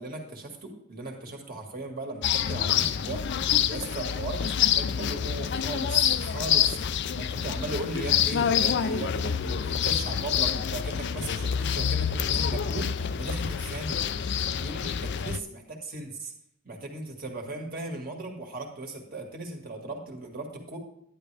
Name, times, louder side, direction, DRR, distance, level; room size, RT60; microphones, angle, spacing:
voice 1, 0.0-3.2 3.7-6.8 7.1-14.0 14.5-16.3 16.6-20.8, right 2 dB, 45° right, 2 dB, 2.1 m, -37 dB
sound 1, 2.2-15.4, left 8 dB, 55° left, 0.4 m, -27 dB
11.0 x 10.0 x 3.4 m, 0.74 s
head